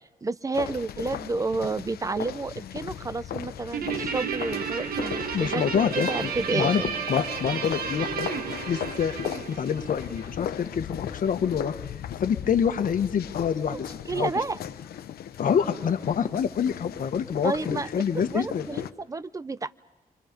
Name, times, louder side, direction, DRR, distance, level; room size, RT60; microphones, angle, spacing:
voice 1, 0.2-6.9 13.7-13.8 14.1-14.6 17.4-17.9 18.3-19.7, right 3 dB, 20° right, 16 dB, 0.7 m, -30 dB
sound 1, 0.5-18.9, left 10 dB, 85° left, 1.0 m, -37 dB
Guitar, 3.7-10.4, right 7 dB, 75° right, 1.5 m, -32 dB
voice 2, 5.3-6.1 6.5-6.8 7.1-8.3 8.7-9.2 9.5-11.7 12.2-14.3 15.4-18.7, left 7 dB, 60° left, 8 dB, 1.5 m, -26 dB
27.5 x 25.0 x 5.3 m, 1.2 s
cardioid pair, 100°, 16 cm